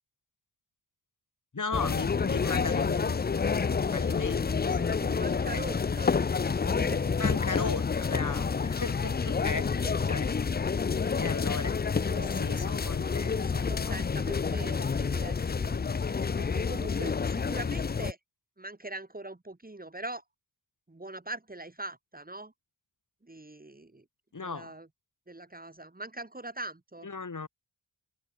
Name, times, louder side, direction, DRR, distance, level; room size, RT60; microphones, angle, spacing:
voice 1, 1.5-5.0 5.5-5.6 7.2-9.8 10.1-10.3 11.1-11.8 12.3-14.0 24.3-24.7 27.0-27.5, left 4 dB, 40° left, 4.5 m, -37 dB
sound 1, 1.7-18.1, left 5 dB, 25° left, 0.3 m, -29 dB
voice 2, 5.0-6.1 6.6-7.5 9.8-9.9 12.0-15.8 16.4-18.2 18.6-20.2 20.9-22.5 23.2-24.0 24.4-24.9 25.3-27.1, right 2 dB, 20° right, 3.3 m, -42 dB
wide cardioid pair, 155°, 48 cm